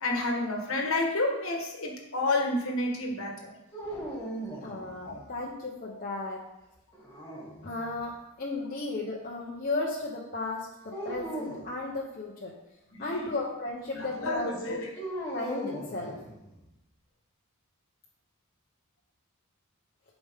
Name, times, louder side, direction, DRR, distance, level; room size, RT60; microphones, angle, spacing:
voice 1, 0.0-3.5 5.0-5.2 12.9-13.3 14.0-14.9, left 2 dB, 60° left, 1 dB, 1.6 m, -30 dB
sound 1, 3.7-5.3 6.9-8.0 10.9-11.7 14.9-16.6, right 1 dB, 10° left, 2.4 m, -38 dB
voice 2, 4.6-6.4 7.6-8.1 8.4-12.5 13.0-14.9 15.3-16.2, left 2 dB, 40° left, -3 dB, 1.0 m, -35 dB
12.0 x 5.1 x 3.7 m, 0.91 s
head